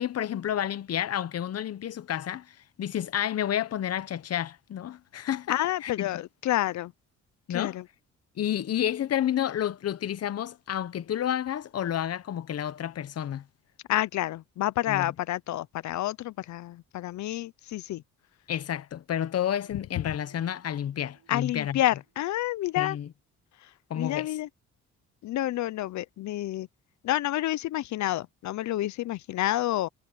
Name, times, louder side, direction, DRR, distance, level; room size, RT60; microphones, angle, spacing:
voice 1, 0.0-6.1 7.5-7.8 8.4-13.4 14.9-15.1 18.5-21.8 22.8-23.1 23.9-24.4, left 10 dB, 55° left, 1.0 m, -30 dB
voice 2, 5.5-6.9 7.5-7.8 13.9-18.0 21.3-23.0 24.0-24.5 25.2-26.7 27.0-29.9, left 14 dB, 70° left, 0.6 m, -29 dB
sound 1, 19.4-23.1, right 13 dB, 60° right, 5.3 m, -66 dB
cardioid pair, 90°, 30 cm